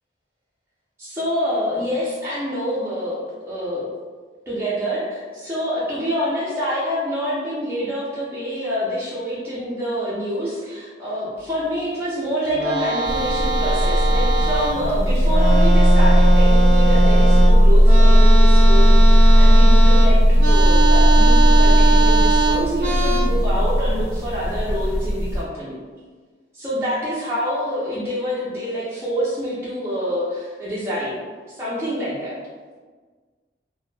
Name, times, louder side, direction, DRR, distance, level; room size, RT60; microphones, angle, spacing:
voice 1, 1.0-3.9 4.5-25.8 26.5-32.4, equal, 15° right, -10 dB, 0.4 m, -26 dB
sound 1, 12.4-14.9 15.2-23.2, right 3 dB, 80° right, 0.4 m, -22 dB
sound 2, 13.0-25.4, equal, 70° left, 0.8 m, -14 dB
2.1 x 2.0 x 3.1 m, 1.5 s
head